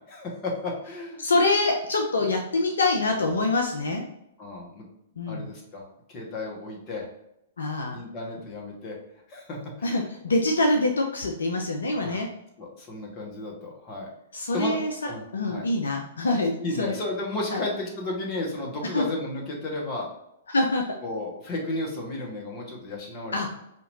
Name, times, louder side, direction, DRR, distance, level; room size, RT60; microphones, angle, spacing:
voice 1, 0.1-1.3 2.1-2.2 4.4-4.9 5.3-7.1 7.9-9.0 9.3-10.0 12.0-12.2 12.6-14.1 14.5-14.8 15.0-15.6 16.6-20.1 21.0-23.4, left 2 dB, 35° left, -1 dB, 1.5 m, -33 dB
voice 2, 1.2-4.1 5.2-5.5 7.6-8.0 9.8-12.3 14.3-16.9 17.5-17.6 18.9-19.1 20.5-20.8 23.3-23.5, left 2 dB, 80° left, 3 dB, 0.6 m, -25 dB
4.9 x 2.9 x 2.7 m, 0.81 s
hypercardioid pair, 115°, 0 cm